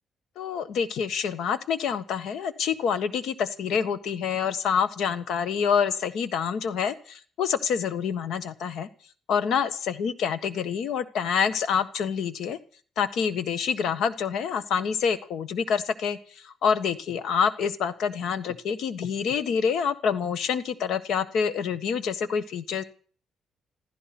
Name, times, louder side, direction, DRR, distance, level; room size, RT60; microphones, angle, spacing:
voice 1, 0.4-8.9 9.3-12.6 13.0-22.8, left 6 dB, 70° left, 13 dB, 1.5 m, -27 dB
15.5 x 15.0 x 6.1 m, 0.43 s
cardioid pair, 150°, 0 cm